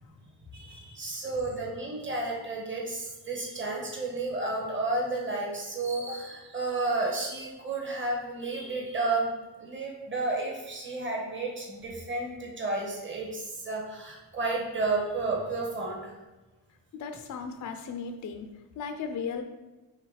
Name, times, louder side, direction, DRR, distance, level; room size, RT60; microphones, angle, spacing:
voice 1, 0.5-9.3 9.6-16.1, right 3 dB, 25° right, -1 dB, 1.3 m, -32 dB
voice 2, 16.9-18.5 18.8-19.4, left 6 dB, 40° left, 6 dB, 0.5 m, -36 dB
4.8 x 3.3 x 3.2 m, 1.1 s
cardioid pair, 80°, 46 cm